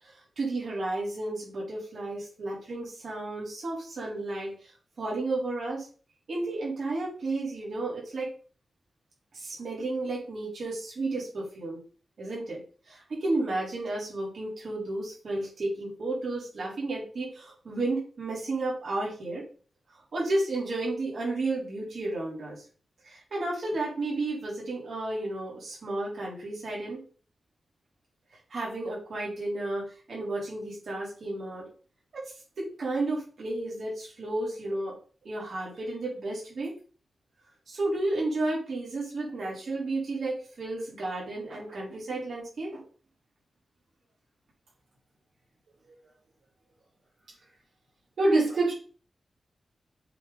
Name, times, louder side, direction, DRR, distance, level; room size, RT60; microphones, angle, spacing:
voice 1, 0.0-4.7 5.0-5.9 6.3-8.3 9.3-11.8 12.2-12.6 12.9-19.5 20.1-22.6 23.0-27.0 28.5-31.6 32.1-32.2 32.6-34.9 35.2-36.7 37.7-42.8, right 2 dB, 70° right, -4 dB, 3.5 m, -32 dB
voice 2, 48.2-48.7, right 2 dB, 85° right, -5 dB, 3.3 m, -22 dB
7.5 x 4.0 x 3.9 m, 0.39 s
wide cardioid pair, 85°, 0 cm